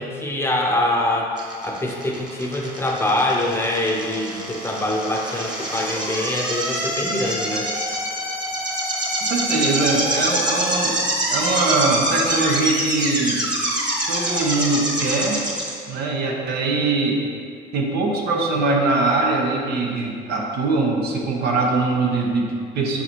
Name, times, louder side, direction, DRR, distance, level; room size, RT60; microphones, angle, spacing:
voice 1, 0.0-1.4 1.6-7.7, left 1 dB, 15° left, -1 dB, 0.7 m, -24 dB
sound 1, 1.4-15.7, right 1 dB, 25° right, 1.3 m, -25 dB
voice 2, 9.2-11.0 11.3-13.4 14.1-15.4 15.9-17.2 17.7-23.0, right 3 dB, 70° right, 0 dB, 0.9 m, -22 dB
6.8 x 4.7 x 3.0 m, 2.2 s
cardioid pair, 110°, 17 cm